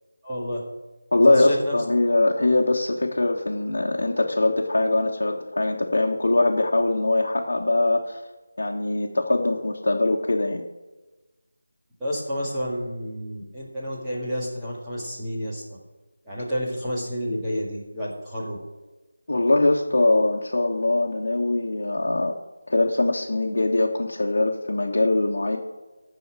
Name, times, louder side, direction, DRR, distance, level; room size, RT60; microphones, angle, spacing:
voice 1, 0.2-0.6 1.2-1.7 12.0-15.8 16.2-18.6, equal, 5° right, -9 dB, 1.9 m, -30 dB
voice 2, 1.1-8.2 8.6-10.6 19.3-22.4 22.7-25.6, left 2 dB, 60° left, -2 dB, 1.3 m, -22 dB
15.5 x 6.3 x 4.7 m, 1.2 s
figure-of-eight pair, 175°, 0 cm